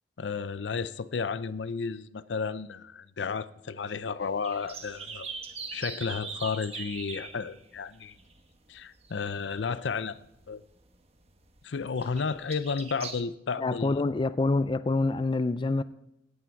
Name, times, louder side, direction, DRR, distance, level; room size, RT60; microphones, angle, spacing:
voice 1, 0.2-5.3 5.7-8.1 8.7-10.2 10.5-10.6 11.6-14.0, left 5 dB, 80° left, 0.5 m, -32 dB
sound 1, 4.2-9.9 10.2-13.2, right 5 dB, 35° right, 1.3 m, -42 dB
voice 2, 13.6-15.8, left 3 dB, 25° left, 0.4 m, -26 dB
17.5 x 8.7 x 4.6 m
head